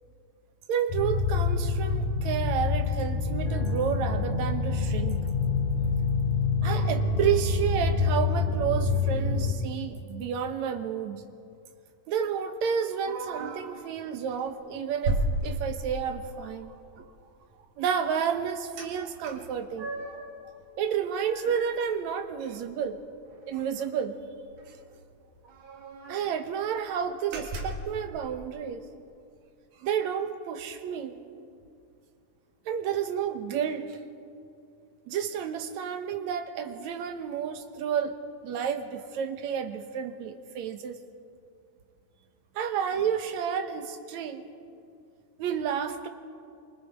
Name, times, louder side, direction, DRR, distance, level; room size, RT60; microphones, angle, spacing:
voice 1, 0.7-5.2 6.6-11.2 12.1-17.1 17.8-20.2 20.8-23.0 23.5-24.1 24.7-24.8 26.1-28.9 29.8-31.2 32.7-34.0 35.1-38.1 38.4-41.0 42.6-44.4 45.4-46.1, right 8 dB, 70° right, 7 dB, 2.4 m, -31 dB
sound 1, 0.9-9.5, left 4 dB, 75° left, 3.4 m, -26 dB
sound 2, 13.1-13.8 14.3-14.5 15.0-16.2 18.8-18.9 19.2-20.3 20.7-22.5 22.8-22.9 23.3-23.5 24.6-24.7 24.9-25.0 25.4-26.3 26.8-26.9 27.3-27.9, right 2 dB, 90° right, 3.6 m, -34 dB
26.0 x 24.5 x 5.0 m, 2.4 s
omnidirectional pair, 3.5 m